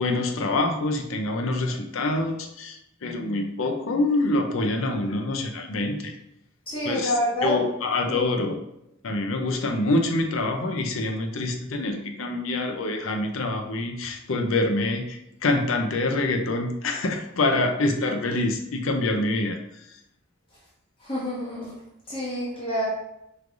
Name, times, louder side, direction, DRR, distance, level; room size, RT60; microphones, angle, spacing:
voice 1, 0.0-6.1 6.8-7.1 7.4-8.6 9.0-19.6, left 2 dB, 75° left, 4 dB, 0.6 m, -26 dB
voice 2, 6.7-7.6 8.1-8.3 21.0-21.7 22.1-22.9, equal, 25° left, -8 dB, 1.3 m, -27 dB
4.7 x 3.2 x 2.5 m, 0.82 s
head